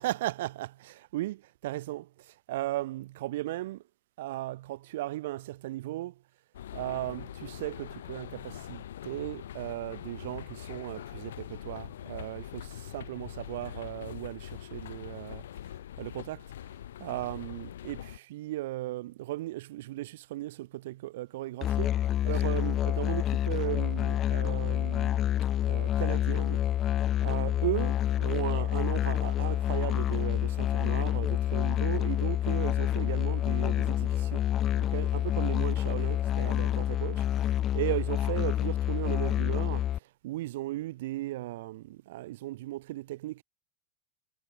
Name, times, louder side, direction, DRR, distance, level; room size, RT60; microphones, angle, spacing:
voice 1, 0.0-3.8 4.2-6.2 6.7-15.5 16.0-16.5 17.0-21.9 22.2-25.3 25.7-26.7 27.2-34.5 34.8-43.4, right 16 dB, 75° right, 3.4 m, -36 dB
sound 1, 6.5-18.2, left 11 dB, 85° left, 2.5 m, -43 dB
Musical instrument, 21.6-40.0, left 11 dB, 40° left, 0.5 m, -28 dB
hypercardioid pair, 105°, 0 cm